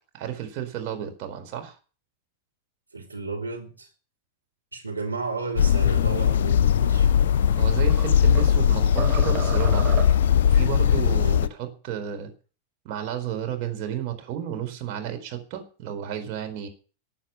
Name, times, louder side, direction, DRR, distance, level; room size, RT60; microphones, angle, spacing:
voice 1, 0.1-1.8 7.5-10.0 10.4-12.3 12.8-16.7, right 9 dB, 45° right, 4.3 m, -32 dB
voice 2, 2.9-3.9 4.7-7.1 11.2-11.4, right 3 dB, 80° right, 3.3 m, -33 dB
sound 1, 5.6-11.5, left 8 dB, 60° left, 0.8 m, -20 dB
sound 2, 7.2-8.6 9.0-10.4, right 5 dB, 25° right, 2.8 m, -34 dB
14.5 x 9.0 x 8.3 m
figure-of-eight pair, 90°, 0 cm